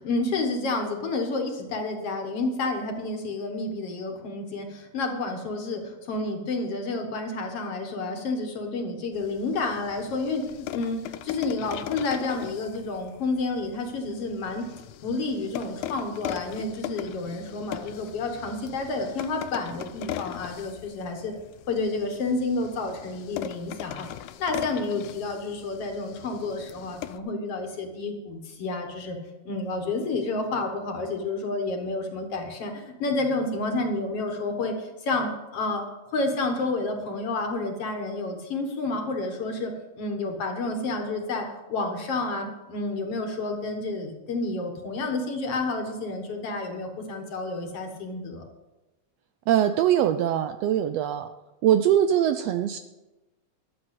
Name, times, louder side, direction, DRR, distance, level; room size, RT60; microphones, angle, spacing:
voice 1, 0.0-14.7 15.0-21.3 21.7-24.1 24.4-29.2 29.5-35.8 36.1-48.4, left 3 dB, 60° left, 4 dB, 2.3 m, -30 dB
sound 1, 9.1-27.2, left 12 dB, 85° left, 2.0 m, -39 dB
voice 2, 49.5-51.3 51.6-52.8, right 10 dB, 80° right, 9 dB, 1.5 m, -22 dB
12.5 x 7.0 x 8.1 m, 1.1 s
omnidirectional pair, 3.3 m